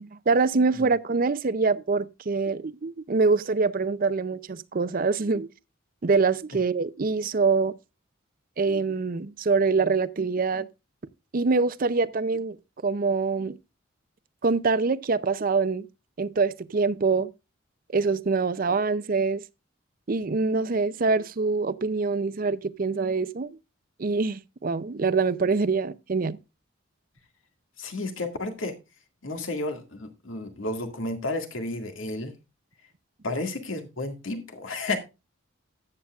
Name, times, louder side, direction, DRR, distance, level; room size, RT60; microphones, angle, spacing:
voice 1, 0.0-5.5 6.0-7.7 8.6-10.7 11.3-12.6 12.8-13.6 14.4-15.9 16.2-17.3 17.9-19.4 20.1-23.5 24.0-26.4, right 4 dB, 45° right, 0.5 m, -24 dB
voice 2, 27.8-28.8 29.2-32.3 33.2-35.0, left 2 dB, 85° left, 2.0 m, -32 dB
14.0 x 8.9 x 2.4 m
head